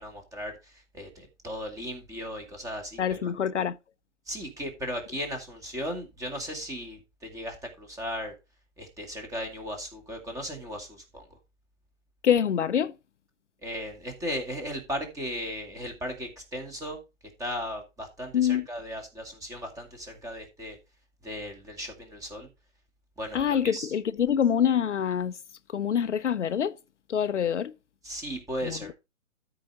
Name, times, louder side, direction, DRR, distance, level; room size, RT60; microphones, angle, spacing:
voice 1, 0.0-3.3 4.3-8.3 8.8-11.3 13.6-17.0 17.4-20.8 21.2-22.5 23.2-23.9 28.0-28.9, equal, 10° right, 2.1 m, -36 dB
voice 2, 3.0-3.8 12.2-12.9 18.3-18.7 23.3-25.4 25.7-26.8 27.1-27.7 28.6-28.8, left 8 dB, 70° left, 0.7 m, -25 dB
13.0 x 5.0 x 3.9 m
figure-of-eight pair, 130°, 37 cm